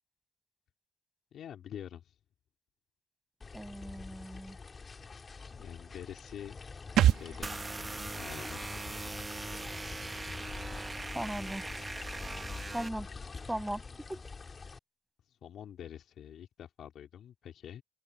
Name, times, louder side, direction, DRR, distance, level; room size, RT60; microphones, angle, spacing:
voice 1, 1.3-2.1 5.5-6.6 7.0-7.7 8.1-8.8 15.4-17.8, left 9 dB, 70° left, 2.8 m, -46 dB
sound 1, 3.4-14.8, left 4 dB, 35° left, 2.3 m, -45 dB
voice 2, 3.5-4.6 11.1-11.6 12.7-13.1 13.5-13.8 14.1-14.2, right 1 dB, 5° right, 6.2 m, -37 dB
sound 2, 7.0-10.5 10.7-10.8, right 11 dB, 80° right, 1.5 m, -32 dB
sound 3, 7.4-12.9, right 3 dB, 20° right, 1.1 m, -41 dB
cardioid pair, 90°, 0 cm